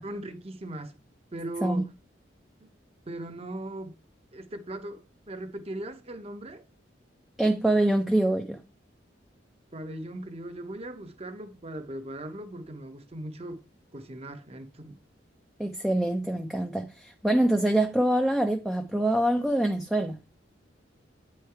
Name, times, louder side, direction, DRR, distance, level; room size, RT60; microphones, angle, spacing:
voice 1, 0.0-1.0 1.3-1.9 3.1-3.9 4.3-6.6 9.7-13.6 13.9-15.0, right 1 dB, 35° right, 0.7 m, -39 dB
voice 2, 7.4-8.6 15.6-20.2, right 1 dB, ahead, 0.4 m, -25 dB
8.9 x 3.2 x 4.5 m
head